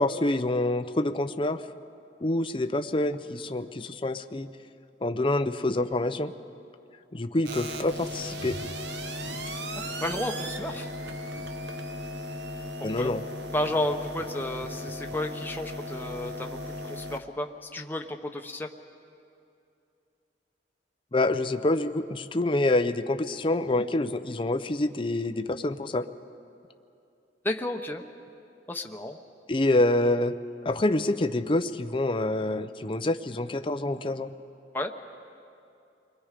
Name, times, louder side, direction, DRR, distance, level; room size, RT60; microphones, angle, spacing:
voice 1, 0.0-1.6 2.2-4.5 5.0-6.3 7.1-8.6 12.8-13.2 21.1-26.1 29.5-30.3 30.6-34.3, left 2 dB, 30° left, 9 dB, 0.6 m, -26 dB
sound 1, 7.4-17.2, equal, 70° right, 1.2 m, -36 dB
voice 2, 10.0-10.9 13.0-13.1 13.5-16.6 16.8-18.7 27.4-28.0 28.7-29.2 34.7-34.9, left 1 dB, 10° left, 3 dB, 1.0 m, -32 dB
29.5 x 22.0 x 5.1 m, 2.6 s
head